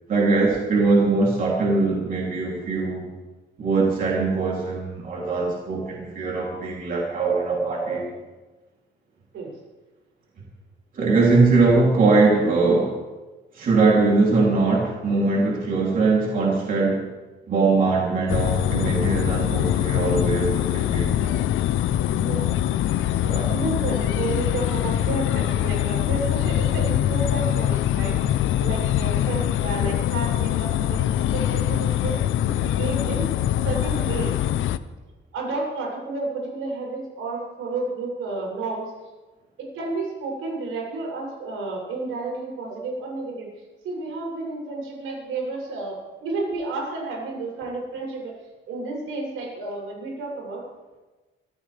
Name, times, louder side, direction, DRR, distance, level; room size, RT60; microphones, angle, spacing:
voice 1, 0.1-3.0 3.6-8.1 10.9-12.9 13.5-17.1 17.5-21.3 23.3-23.5, right 3 dB, 40° right, -4 dB, 3.2 m, -21 dB
sound 1, 18.3-34.8, left 12 dB, 70° left, 0.7 m, -23 dB
voice 2, 22.1-22.6 23.1-33.3 33.6-34.3 35.3-38.9 39.7-43.5 43.8-48.3 48.7-50.6, right 3 dB, 90° right, -2 dB, 7.4 m, -31 dB
25.5 x 15.0 x 3.5 m, 1.2 s
cardioid pair, 175°, 21 cm